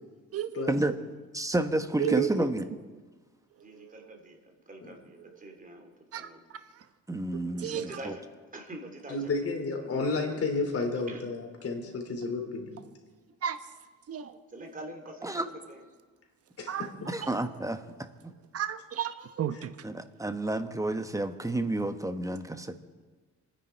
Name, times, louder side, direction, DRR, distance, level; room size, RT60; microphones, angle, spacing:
voice 1, 0.3-0.8 2.0-2.3 3.7-3.9 6.1-6.8 7.6-8.0 13.4-13.6 14.1-14.4 16.7-16.9 17.2-17.3 18.5-19.7, right 10 dB, 50° right, 10 dB, 1.1 m, -33 dB
voice 2, 1.3-2.6 7.1-8.1 15.2-15.5 17.1-17.8 18.2-18.3 19.8-22.8, right 2 dB, 10° right, 9 dB, 1.2 m, -30 dB
voice 3, 2.0-2.4 4.8-5.0 9.1-12.9 16.6-17.1 19.5-19.6, left 3 dB, 50° left, 3 dB, 3.7 m, -32 dB
voice 4, 3.6-6.4 7.7-9.3 11.1-11.2 14.5-15.8, right 1 dB, 25° right, 4 dB, 3.1 m, -45 dB
27.5 x 10.0 x 4.6 m, 1.4 s
cardioid pair, 90°, 30 cm